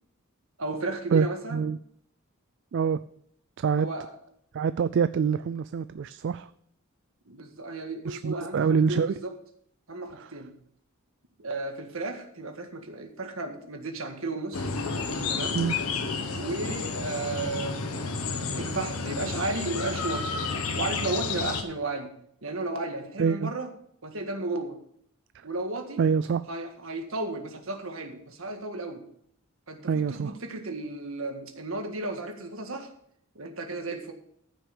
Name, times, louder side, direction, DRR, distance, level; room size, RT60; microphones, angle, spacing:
voice 1, 0.6-1.6 3.8-4.1 7.3-9.3 9.9-10.5 11.4-14.7 15.3-15.6 16.3-17.9 18.5-20.4 20.7-22.1 22.4-23.7 24.0-24.8 25.4-26.0 26.5-29.0 29.7-32.9 33.3-34.1, right 2 dB, 70° right, 5 dB, 1.7 m, -34 dB
voice 2, 1.1-1.8 2.7-3.0 3.6-3.9 4.5-6.5 8.1-9.1 10.2-10.3 15.5-15.7 23.2-23.5 26.0-26.4 29.9-30.3, right 6 dB, 55° right, 14 dB, 0.3 m, -25 dB
sound 1, 14.5-21.6, left 4 dB, 90° left, 1.3 m, -31 dB
14.0 x 6.2 x 5.1 m, 0.67 s
head